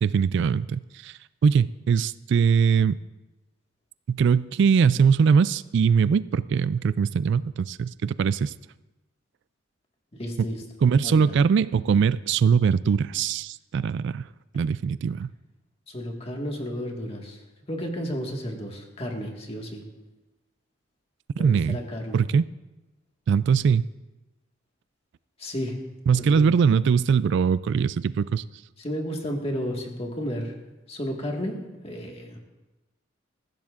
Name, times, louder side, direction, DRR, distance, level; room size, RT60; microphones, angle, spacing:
voice 1, 0.0-3.0 4.1-8.5 10.8-14.3 14.5-15.3 21.4-21.8 22.1-22.4 23.3-23.9 26.1-28.4, right 6 dB, 65° right, 17 dB, 0.3 m, -21 dB
voice 2, 10.2-10.6 11.0-11.4 15.9-17.4 17.7-19.8 21.4-22.2 25.4-25.8 26.1-26.5 28.8-30.5 30.9-32.4, equal, 30° left, 1 dB, 1.7 m, -32 dB
19.5 x 15.0 x 2.5 m, 1.1 s
head